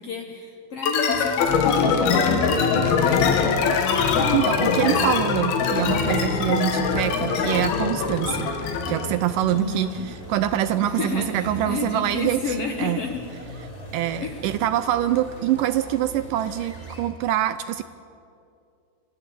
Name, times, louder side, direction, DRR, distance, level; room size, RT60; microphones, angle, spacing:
voice 1, 0.0-3.5 9.5-10.0 10.8-13.2 14.2-14.4, left 4 dB, 65° left, 3 dB, 1.5 m, -32 dB
sound 1, 0.8-9.1, left 5 dB, 90° left, 3.5 m, -22 dB
sound 2, 1.1-17.1, right 1 dB, 15° left, 2.8 m, -41 dB
voice 2, 4.3-8.5 8.9-13.1 13.9-17.8, right 11 dB, 80° right, 12 dB, 2.0 m, -25 dB
26.0 x 14.5 x 8.6 m, 2.6 s
omnidirectional pair, 4.2 m